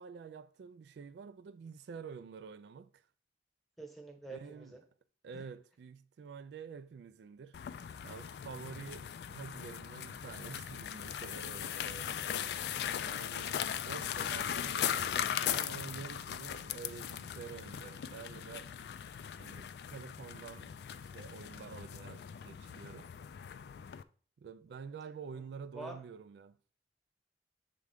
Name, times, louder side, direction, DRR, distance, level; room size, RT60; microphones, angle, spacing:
voice 1, 0.0-3.0 4.3-4.7 5.2-7.6 8.0-12.4 12.9-15.0 15.4-19.0 19.4-20.7 21.1-23.1 24.4-26.6, right 6 dB, 75° right, 0.3 m, -48 dB
voice 2, 3.8-4.8 5.3-5.5 24.8-24.9 25.3-25.4 25.7-26.0, right 2 dB, ahead, 1.1 m, -47 dB
sound 1, 7.5-24.0, left 9 dB, 70° left, 0.3 m, -39 dB
7.6 x 3.6 x 3.4 m
head